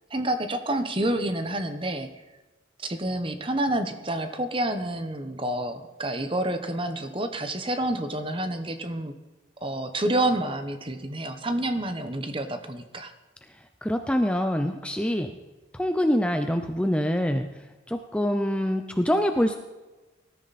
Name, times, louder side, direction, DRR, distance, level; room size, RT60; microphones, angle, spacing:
voice 1, 0.1-2.1 2.8-9.1 9.6-13.1, right 1 dB, 25° right, 8 dB, 1.1 m, -28 dB
voice 2, 13.8-15.3 15.7-17.5 17.9-19.6, equal, 5° left, 6 dB, 0.6 m, -25 dB
19.0 x 13.5 x 4.2 m, 1.2 s
head